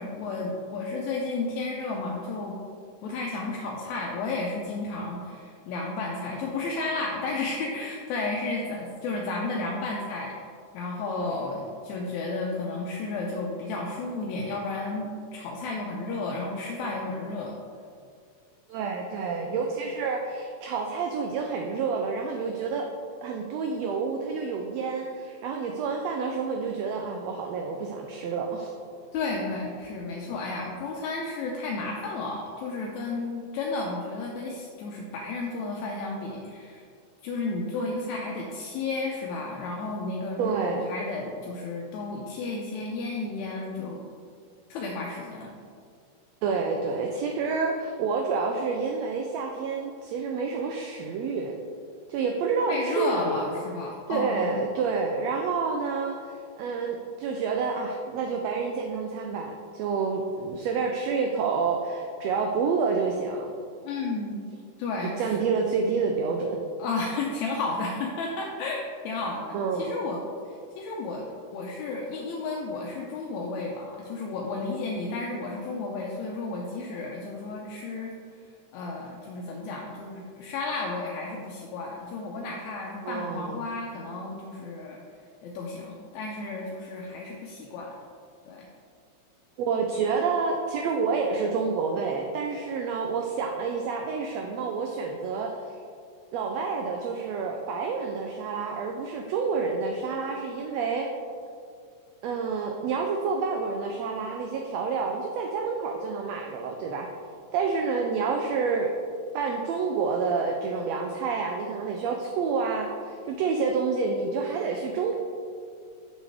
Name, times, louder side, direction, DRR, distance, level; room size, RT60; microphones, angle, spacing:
voice 1, 0.0-2.6 3.0-10.4 10.7-17.6 29.1-36.8 37.2-44.1 44.7-45.5 52.7-54.6 63.8-64.4 64.8-65.4 66.8-78.1 78.7-85.0 85.4-88.0 88.5-88.7, left 3 dB, 80° left, -1 dB, 1.8 m, -32 dB
voice 2, 18.7-22.9 23.2-28.7 40.4-40.9 46.4-51.5 52.1-53.6 54.1-63.5 65.0-66.6 69.5-69.9 83.0-83.6 89.6-95.6 96.3-101.1 102.2-107.1 107.5-108.9 109.3-115.2, right 5 dB, 85° right, 2 dB, 1.5 m, -28 dB
6.3 x 6.3 x 3.4 m, 2.2 s
omnidirectional pair, 3.5 m